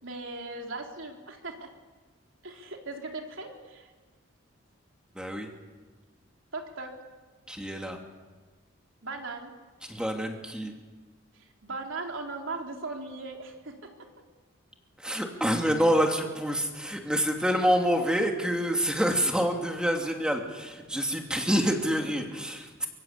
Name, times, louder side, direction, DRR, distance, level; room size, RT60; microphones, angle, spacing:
voice 1, 0.0-1.7 2.4-3.9 6.5-6.9 9.0-9.5 11.3-13.9, right 3 dB, 70° right, 2 dB, 4.0 m, -38 dB
voice 2, 5.1-5.5 7.5-8.0 9.9-10.7 15.0-22.9, equal, 5° right, 2 dB, 2.8 m, -27 dB
24.0 x 23.5 x 8.5 m, 1.3 s
head